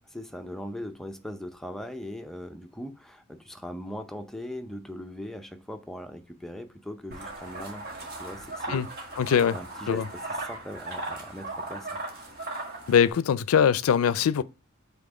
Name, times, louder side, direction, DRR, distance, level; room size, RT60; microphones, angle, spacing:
voice 1, 0.0-7.9 8.1-9.1 9.5-12.0, left 1 dB, ahead, 0.5 m, -40 dB
sound 1, 7.1-13.1, right 2 dB, 50° right, 1.6 m, -37 dB
voice 2, 9.2-9.6 9.9-10.0 12.9-14.4, left 7 dB, 90° left, 0.4 m, -22 dB
5.7 x 3.5 x 4.9 m
head